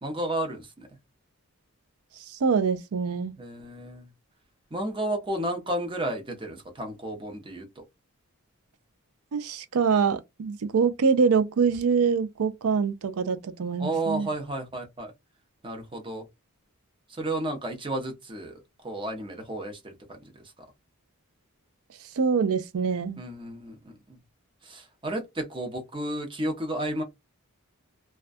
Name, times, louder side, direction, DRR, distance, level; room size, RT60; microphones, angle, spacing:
voice 1, 0.0-0.9 3.4-4.1 4.7-7.8 13.8-15.1 15.6-16.3 17.1-20.2 23.2-24.2 24.6-27.0, right 1 dB, 25° right, 0.7 m, -32 dB
voice 2, 2.3-3.3 9.3-14.3 22.2-23.2, right 5 dB, 75° right, 0.4 m, -24 dB
2.3 x 2.2 x 2.5 m
head